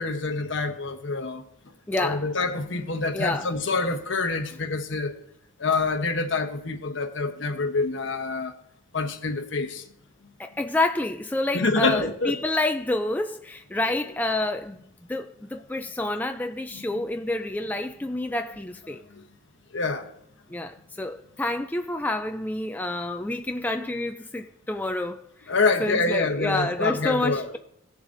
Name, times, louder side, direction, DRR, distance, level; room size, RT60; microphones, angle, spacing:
voice 1, 0.0-1.4 2.0-5.1 5.6-8.5 8.9-9.8 11.5-12.4 19.7-20.1 25.5-27.5, left 3 dB, 65° left, 0.9 m, -26 dB
voice 2, 1.9-2.3 3.1-3.5 10.4-14.8 15.1-19.0 20.5-25.5 25.8-27.6, left 2 dB, 10° left, 0.3 m, -28 dB
18.0 x 7.0 x 2.6 m
head